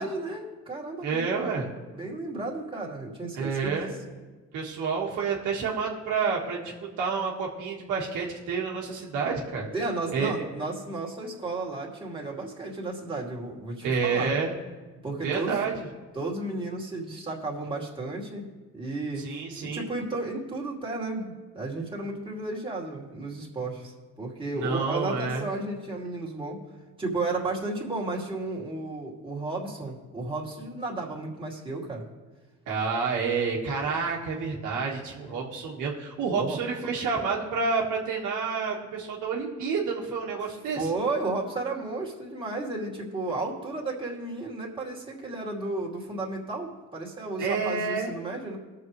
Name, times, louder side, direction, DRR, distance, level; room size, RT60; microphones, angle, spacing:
voice 1, 0.0-1.4 1.9-3.9 9.7-14.3 15.0-15.6 16.1-18.5 18.7-26.6 27.0-32.0 35.2-35.3 36.3-36.6 40.7-48.6, right 2 dB, 15° right, -3 dB, 2.5 m, -33 dB
voice 2, 1.0-1.7 3.4-4.0 4.5-6.6 7.0-9.7 10.1-10.3 13.8-14.5 15.2-15.9 19.2-19.9 24.5-25.5 32.7-40.9 47.4-48.1, right 5 dB, 85° right, -3 dB, 1.7 m, -29 dB
20.0 x 6.8 x 3.2 m, 1.3 s
cardioid pair, 90°, 30 cm